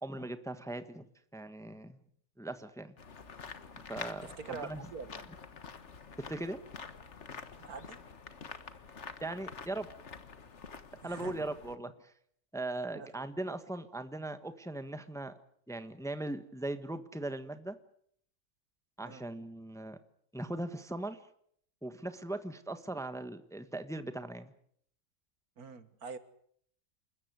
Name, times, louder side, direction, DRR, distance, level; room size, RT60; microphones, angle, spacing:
voice 1, 0.0-1.1 1.3-2.0 2.4-2.9 3.9-4.8 6.2-6.6 9.2-9.9 11.0-12.1 12.5-15.3 15.7-17.8 19.0-20.0 20.3-21.2 21.8-24.5, right 2 dB, ahead, 10 dB, 1.2 m, -39 dB
sound 1, 3.0-11.8, left 5 dB, 50° left, 1.7 m, -47 dB
voice 2, 4.2-5.3 7.7-8.0 11.0-11.5 12.9-13.1 19.0-19.3 25.6-26.2, right 5 dB, 75° right, 12 dB, 2.0 m, -45 dB
28.5 x 14.5 x 9.5 m, 0.68 s
omnidirectional pair, 1.6 m